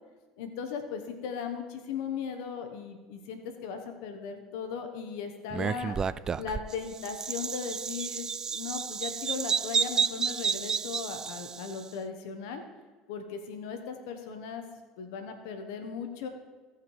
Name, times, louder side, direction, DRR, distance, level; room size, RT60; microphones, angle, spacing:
voice 1, 0.4-6.0 6.4-12.6 13.1-14.6 15.0-16.3, left 6 dB, 75° left, 7 dB, 1.0 m, -37 dB
Bird vocalization bird call bird song, 5.5-11.8, right 6 dB, 30° right, 0.3 m, -31 dB
17.0 x 5.7 x 3.2 m, 1.4 s
hypercardioid pair, 85°, 2 cm